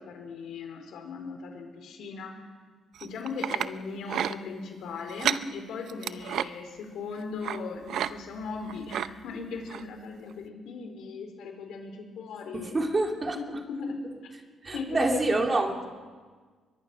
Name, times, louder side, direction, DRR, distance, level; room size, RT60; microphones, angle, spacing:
voice 1, 0.0-2.5 3.0-12.7 13.3-14.0 14.7-15.3, left 4 dB, 80° left, 4 dB, 4.3 m, -38 dB
sound 1, 2.9-3.7 4.1-4.3 5.1-5.4 5.9-6.5 7.4-7.6 7.9-8.1 8.4-9.1 9.7-9.8 10.3-10.4, right 9 dB, 70° right, 0.7 m, -30 dB
voice 2, 12.5-13.6 14.6-15.9, right 2 dB, 30° right, 3 dB, 2.6 m, -27 dB
23.5 x 21.0 x 6.1 m, 1.5 s
cardioid pair, 90°, 0 cm